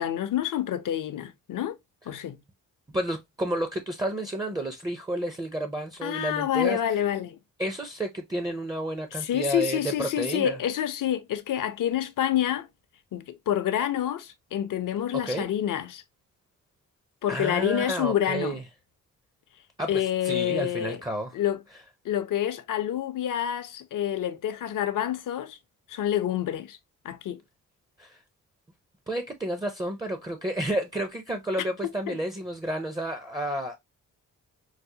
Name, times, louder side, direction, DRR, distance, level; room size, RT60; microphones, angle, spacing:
voice 1, 0.0-1.8 2.1-2.4 6.0-7.4 9.1-12.7 13.1-16.0 17.2-18.6 19.9-21.0 21.3-21.6 22.0-25.6 25.9-26.8 27.0-27.4 31.8-32.2, left 11 dB, 70° left, 0.6 m, -28 dB
voice 2, 2.9-6.8 7.6-10.6 15.2-15.5 17.3-18.6 19.8-21.3 28.0-28.2 29.1-33.8, right 1 dB, 10° right, 0.4 m, -31 dB
4.7 x 2.0 x 2.6 m
cardioid pair, 115°, 33 cm